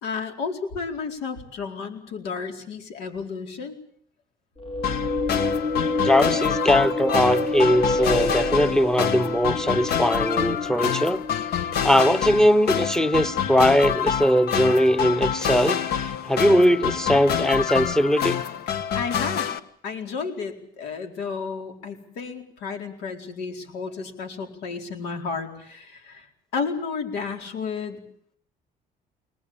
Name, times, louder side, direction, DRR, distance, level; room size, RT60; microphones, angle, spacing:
voice 1, 0.0-3.8 18.9-19.5 19.8-26.3 26.5-28.0, left 5 dB, 90° left, 4 dB, 4.4 m, -32 dB
sound 1, 4.6-11.9, left 2 dB, 35° left, 2.8 m, -28 dB
sound 2, 4.8-19.6, left 8 dB, 70° left, 1.5 m, -27 dB
voice 2, 6.0-11.2 11.8-18.4, equal, 5° left, 14 dB, 1.0 m, -20 dB
23.5 x 20.0 x 8.7 m, 0.65 s
cardioid pair, 110°, 17 cm